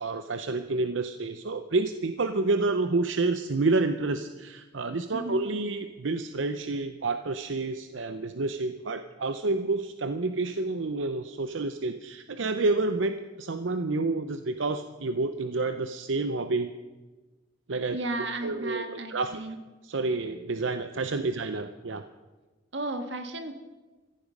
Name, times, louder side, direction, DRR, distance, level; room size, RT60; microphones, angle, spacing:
voice 1, 0.0-16.7 17.7-18.0 18.4-19.4 19.8-22.0, right 3 dB, 90° right, 9 dB, 0.7 m, -29 dB
voice 2, 5.1-5.4 17.9-19.6 22.7-23.5, right 2 dB, 70° right, 6 dB, 1.8 m, -34 dB
15.0 x 14.5 x 5.3 m, 1.2 s
head